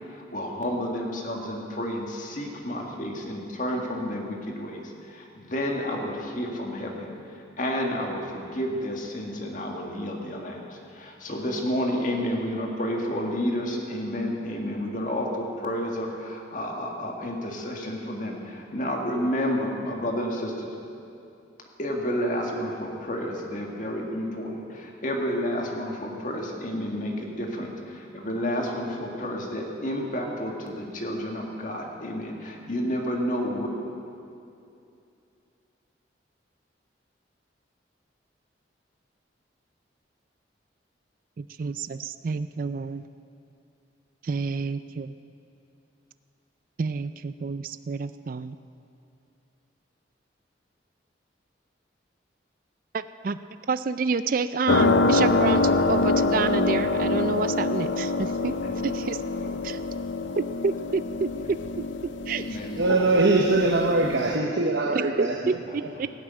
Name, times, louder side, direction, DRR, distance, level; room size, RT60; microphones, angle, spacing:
voice 1, 0.1-4.8 5.1-7.1 7.6-20.7 21.8-33.7 62.5-63.2, equal, 45° left, 1 dB, 1.9 m, -30 dB
voice 2, 41.4-43.0 44.2-45.1 46.8-48.6 52.9-53.4 53.7-58.6 58.8-59.2 59.6-59.8 60.4-61.3 61.8-62.6 64.9-66.1, right 4 dB, 50° right, 13 dB, 0.4 m, -29 dB
sound 1, 54.7-64.3, left 3 dB, 90° left, 0.7 m, -25 dB
voice 3, 62.8-65.3, right 2 dB, 75° right, 2 dB, 0.9 m, -22 dB
17.0 x 8.4 x 9.0 m, 2.6 s
head